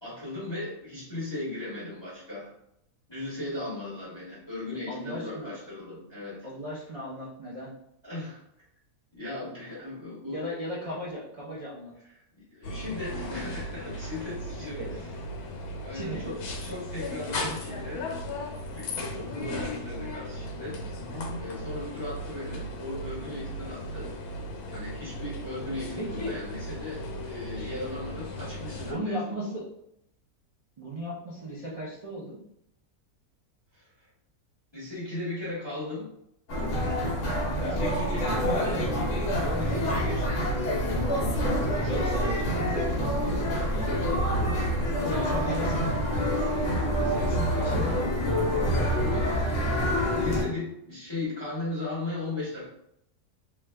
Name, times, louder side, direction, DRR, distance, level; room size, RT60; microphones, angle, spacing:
voice 1, 0.0-2.5 3.1-6.5 8.0-8.4 9.1-10.4 12.5-15.1 15.8-18.1 18.3-18.4 18.7-20.8 21.4-24.2 24.7-29.5 33.7-34.1 34.7-36.1 37.6-38.9 39.3-40.5 41.7-42.6 43.5-43.9 45.0-45.9 48.9-52.7, left 2 dB, 20° left, -8 dB, 1.0 m, -37 dB
voice 2, 4.9-5.5 6.4-7.7 10.3-11.9 14.6-14.9 15.9-16.3 18.9-19.5 25.9-26.4 27.5-27.7 28.8-29.7 30.8-32.4 38.2-38.5 41.2-43.3 43.7-44.6 45.0-45.7 46.9-48.8, right 1 dB, 70° right, -7 dB, 0.3 m, -37 dB
sound 1, 12.6-28.9, left 1 dB, 80° left, 1.2 m, -36 dB
sound 2, 36.5-50.4, equal, 55° left, 1.1 m, -27 dB
2.9 x 2.3 x 3.3 m, 0.78 s
omnidirectional pair, 1.6 m